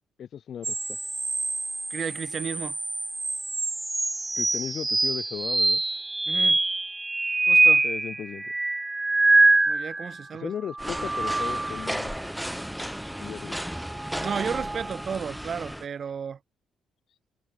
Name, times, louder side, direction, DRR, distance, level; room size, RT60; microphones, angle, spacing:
voice 1, 0.2-1.0 4.4-6.0 7.8-8.5 10.4-12.1 13.2-13.6, left 9 dB, 60° left, 2.0 m, -36 dB
sound 1, 0.6-10.2 10.7-12.0 13.8-15.0, right 2 dB, 20° right, 0.6 m, -25 dB
voice 2, 1.9-2.8 6.3-6.6 7.5-7.8 9.7-10.5 14.2-16.4, right 7 dB, 50° right, 2.6 m, -33 dB
sound 2, 10.8-15.9, equal, ahead, 1.1 m, -34 dB
cardioid pair, 90°, 0 cm